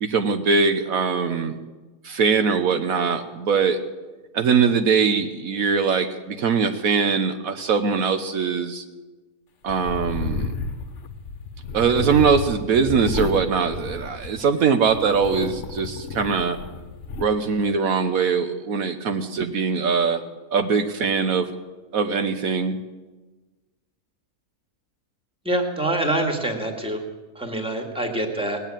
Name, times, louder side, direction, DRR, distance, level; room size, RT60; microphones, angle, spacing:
voice 1, 0.0-1.5 2.0-3.8 4.3-8.8 9.6-10.5 11.7-16.6 17.2-20.2 20.5-21.5 21.9-22.7, right 5 dB, 70° right, 7 dB, 1.3 m, -22 dB
sound 1, 9.7-14.5 14.9-17.3, left 4 dB, 55° left, 1.3 m, -32 dB
voice 2, 25.4-27.0 27.4-28.6, right 1 dB, 5° right, 3 dB, 1.9 m, -25 dB
19.0 x 8.3 x 8.9 m, 1.2 s
omnidirectional pair, 1.5 m